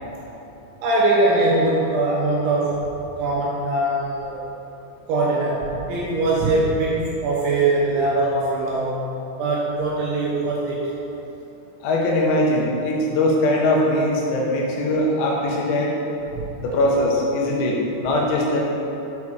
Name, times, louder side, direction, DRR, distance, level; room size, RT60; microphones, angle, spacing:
voice 1, 0.8-4.4 5.1-9.0 9.4-10.9 16.3-16.4, right 2 dB, 80° right, -5 dB, 2.9 m, -22 dB
voice 2, 11.8-15.9 16.6-18.6, left 1 dB, 85° left, -2 dB, 3.7 m, -21 dB
8.2 x 4.8 x 4.9 m, 3.0 s
omnidirectional pair, 5.9 m